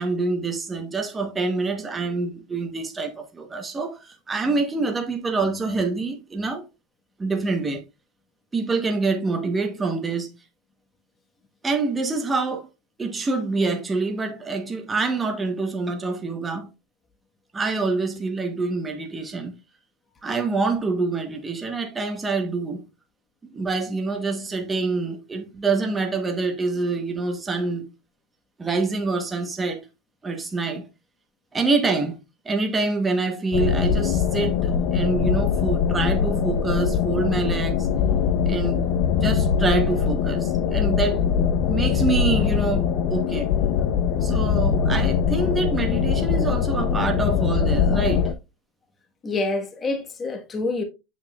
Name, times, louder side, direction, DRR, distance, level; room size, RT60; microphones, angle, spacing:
voice 1, 0.0-6.6 7.2-7.8 8.5-10.4 11.6-12.7 13.0-16.7 17.5-19.6 20.2-22.8 23.5-27.9 28.6-29.9 30.2-30.8 31.5-32.2 32.4-37.9 38.4-38.9 39.2-41.2 41.7-43.5 44.2-48.3, right 3 dB, 15° right, 1.0 m, -26 dB
sound 1, 33.5-48.3, left 7 dB, 55° left, 0.6 m, -22 dB
voice 2, 49.2-50.8, left 3 dB, 20° left, 1.3 m, -27 dB
6.7 x 6.1 x 2.3 m
supercardioid pair, 135°, 0 cm